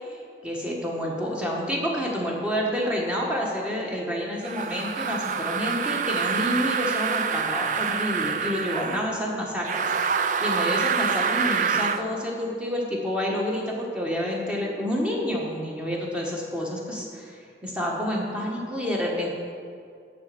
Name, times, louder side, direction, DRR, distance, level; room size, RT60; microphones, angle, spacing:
voice 1, 0.4-19.3, equal, 5° right, -3 dB, 1.5 m, -29 dB
sound 1, 4.4-9.1 9.6-12.0, right 6 dB, 45° right, 0.3 m, -26 dB
12.0 x 4.3 x 7.8 m, 2.3 s
head